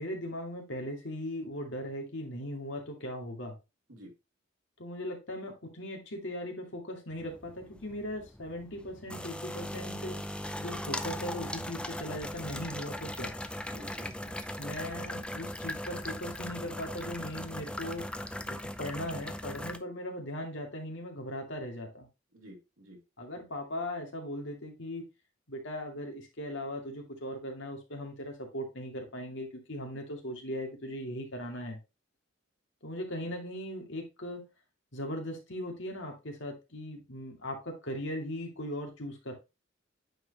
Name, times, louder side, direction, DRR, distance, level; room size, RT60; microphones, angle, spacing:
voice 1, 0.0-3.5 4.8-10.2 10.6-13.3 14.6-18.1 18.5-22.1 23.2-25.1 25.5-31.8 32.8-34.4 34.9-39.3, left 1 dB, 65° left, 2 dB, 2.4 m, -39 dB
sound 1, 7.1-19.8, left 1 dB, 5° left, 0.5 m, -39 dB
voice 2, 13.7-14.4 22.3-23.0 33.2-33.3, equal, 85° right, 0 dB, 3.2 m, -50 dB
9.1 x 4.8 x 2.9 m, 0.25 s
head